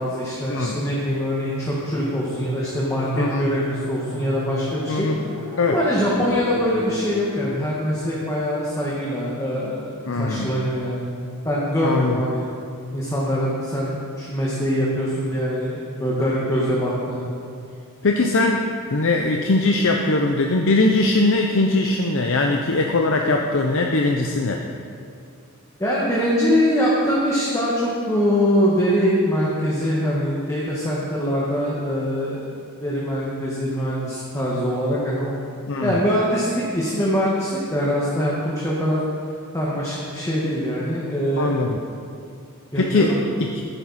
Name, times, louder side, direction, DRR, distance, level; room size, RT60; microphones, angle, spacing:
voice 1, 0.0-5.1 5.7-11.1 11.4-12.4 12.9-17.3 25.8-32.5 32.8-35.4 35.8-39.0 39.5-41.5 42.7-43.2, equal, 15° left, -6 dB, 1.7 m, -23 dB
sound 1, 1.3-8.2, right 1 dB, 70° right, 3.3 m, -36 dB
voice 2, 3.1-3.5 4.9-5.2 5.6-5.8 10.0-10.5 11.8-12.2 18.0-18.6 18.9-24.6 35.7-36.0 41.4-41.8 42.7-43.2, left 2 dB, 60° left, 2 dB, 0.8 m, -20 dB
14.5 x 11.0 x 4.3 m, 2.4 s
head